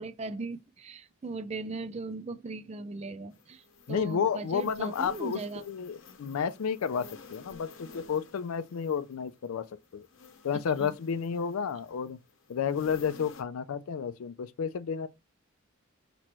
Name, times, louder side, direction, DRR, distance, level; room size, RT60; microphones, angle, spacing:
voice 1, 0.0-3.6 3.9-5.6 10.8-10.9, right 3 dB, 30° right, 0.4 m, -38 dB
sound 1, 3.3-13.4, left 4 dB, 65° left, 0.8 m, -53 dB
voice 2, 3.9-9.7 9.9-10.1 10.4-12.2 12.5-15.1, left 7 dB, 85° left, 0.4 m, -31 dB
5.9 x 3.0 x 3.0 m
head